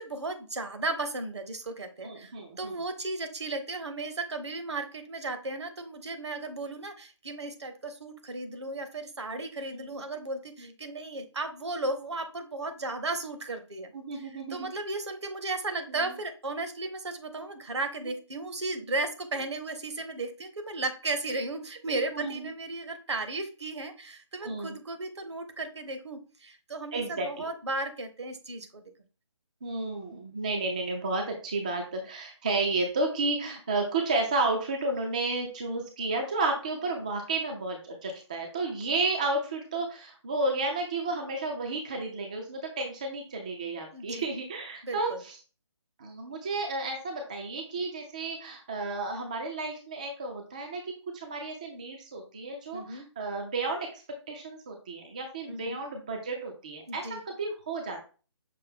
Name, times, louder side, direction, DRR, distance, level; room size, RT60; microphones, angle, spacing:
voice 1, 0.0-13.9 14.2-28.8 43.9-44.3 44.8-45.2 52.7-53.1 55.5-55.8 56.9-57.2, right 2 dB, 65° right, 8 dB, 0.9 m, -35 dB
voice 2, 2.0-2.8 9.7-9.9 10.6-10.7 13.9-14.7 15.9-16.0 22.1-22.5 24.4-24.7 26.9-27.5 29.6-45.4 46.0-54.0 54.3-58.1, right 3 dB, 15° right, 3 dB, 0.3 m, -32 dB
5.8 x 2.7 x 3.5 m, 0.35 s
figure-of-eight pair, 145°, 15 cm